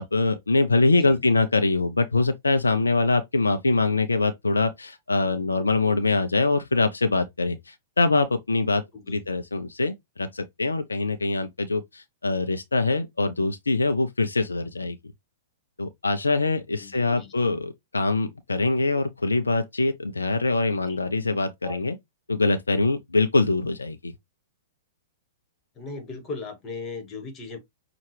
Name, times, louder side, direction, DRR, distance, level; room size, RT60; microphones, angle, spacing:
voice 1, 0.0-15.0 15.8-21.9 22.3-24.1, left 3 dB, 80° left, 0.6 m, -24 dB
voice 2, 0.9-1.2 8.9-9.2 16.7-17.5 20.8-21.0 21.6-21.8 25.7-27.6, left 3 dB, 25° left, 1.5 m, -38 dB
5.8 x 2.4 x 3.3 m
figure-of-eight pair, 105°, 0 cm